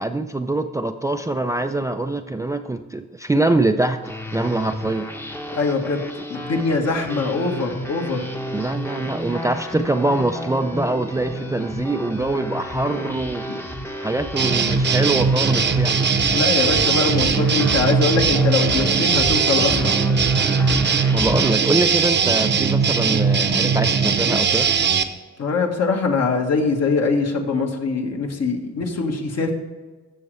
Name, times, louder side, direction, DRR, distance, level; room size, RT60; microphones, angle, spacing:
voice 1, 0.0-5.1 8.5-13.4 14.0-16.0 21.1-24.7, right 2 dB, 10° right, 8 dB, 0.4 m, -23 dB
sound 1, 4.0-21.5, equal, 10° left, 0.9 m, -31 dB
voice 2, 5.5-6.0 6.3-8.2 13.5-13.6 16.3-19.9 25.4-29.5, left 4 dB, 55° left, 3 dB, 1.6 m, -22 dB
sound 2, 14.4-25.0, right 5 dB, 35° right, 0.8 m, -19 dB
14.0 x 6.4 x 3.3 m, 1.3 s
cardioid pair, 90°, 30 cm